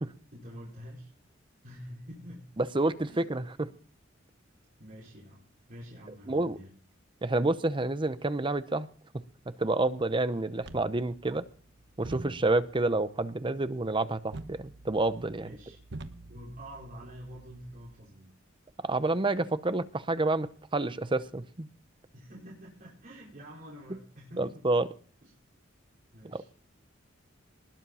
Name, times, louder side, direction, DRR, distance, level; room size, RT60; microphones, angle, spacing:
voice 1, 0.3-1.1 1.6-2.4 3.1-3.3 4.8-6.7 15.4-15.8 16.3-18.4 22.1-24.6 25.2-25.3 26.1-26.5, equal, 45° right, -5 dB, 4.9 m, -47 dB
voice 2, 2.6-3.7 6.3-6.6 7.2-8.9 9.1-11.4 12.0-15.6 18.8-21.7 24.4-24.9 26.2-26.5, right 2 dB, 25° right, 13 dB, 0.8 m, -29 dB
sound 1, 10.6-18.0, right 2 dB, 65° right, 1.1 m, -48 dB
20.0 x 7.5 x 5.6 m, 0.42 s
head